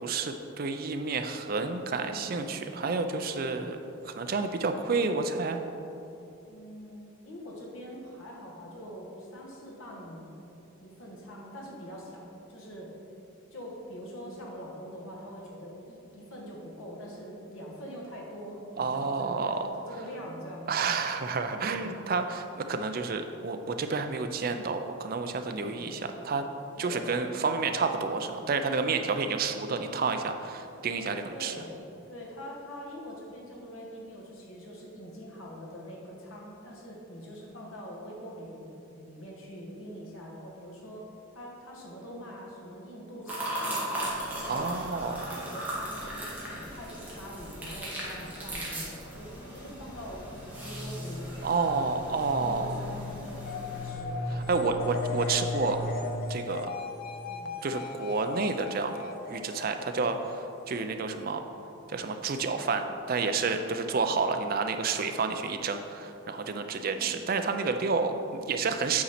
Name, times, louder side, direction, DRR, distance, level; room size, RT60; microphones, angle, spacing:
voice 1, 0.0-3.8 4.0-5.6 18.8-19.7 20.7-26.4 26.8-31.5 44.5-45.3 51.4-52.7 54.3-55.8 56.3-56.7 57.6-59.0 59.3-61.4 61.9-69.0, right 4 dB, 45° right, 7 dB, 0.4 m, -30 dB
voice 2, 2.1-2.6 6.5-10.4 10.8-12.9 13.5-19.6 19.9-20.9 21.5-22.0 25.5-25.9 26.8-27.2 31.3-31.8 32.1-44.0 44.3-44.8 45.2-50.3 50.6-51.7 52.4-54.5 57.3-57.6 62.3-62.6 66.4-67.3, equal, 70° left, -2 dB, 1.4 m, -44 dB
sound 1, 43.3-53.9, right 1 dB, 5° right, 1.3 m, -38 dB
sound 2, 43.9-56.2, left 1 dB, 85° left, 0.9 m, -40 dB
sound 3, 53.5-60.9, left 5 dB, 40° left, 0.3 m, -39 dB
8.5 x 4.2 x 4.2 m, 2.9 s
head